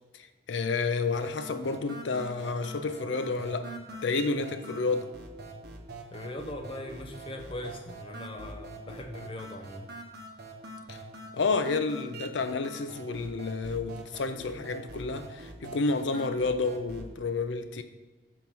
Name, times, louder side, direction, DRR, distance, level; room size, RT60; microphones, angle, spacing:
voice 1, 0.5-3.7 4.0-5.1 10.9-11.0 11.3-17.8, left 3 dB, 75° left, 9 dB, 0.5 m, -30 dB
sound 1, 1.1-17.1, right 2 dB, 60° right, 0.8 m, -44 dB
voice 2, 6.1-9.9, left 1 dB, 30° left, 3 dB, 0.8 m, -40 dB
5.8 x 4.6 x 5.3 m, 1.2 s
head